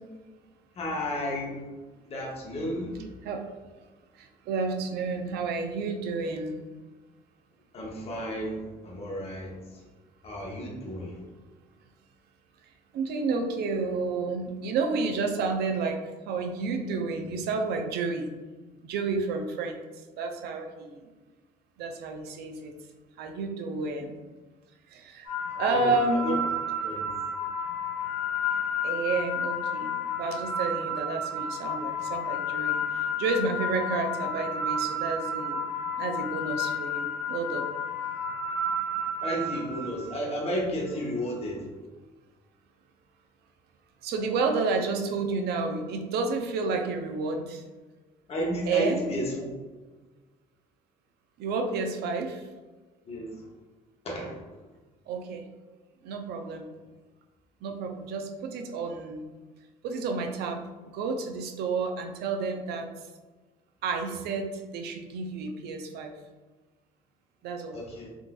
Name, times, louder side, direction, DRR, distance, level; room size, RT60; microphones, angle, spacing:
voice 1, 0.7-1.6 2.0-3.0 7.7-9.8 10.2-11.2 25.5-26.4 26.8-27.1 39.2-41.7 48.3-49.6 53.0-53.5 54.0-54.4 67.7-68.1, equal, 35° left, -2 dB, 0.8 m, -32 dB
voice 2, 4.1-6.6 12.6-16.0 16.3-18.3 18.8-19.8 20.2-21.0 21.8-22.7 23.2-24.2 24.9-25.3 25.6-26.3 28.8-35.6 36.0-37.7 44.0-47.6 48.7-49.0 51.4-52.5 55.1-55.4 56.0-56.7 57.6-59.3 59.8-60.6 60.9-62.9 63.8-66.1 67.4-67.8, right 4 dB, 75° right, 4 dB, 0.5 m, -30 dB
sound 1, 25.2-40.4, left 2 dB, 30° right, 1.1 m, -31 dB
3.8 x 2.5 x 2.3 m, 1.2 s
cardioid pair, 110°, 17 cm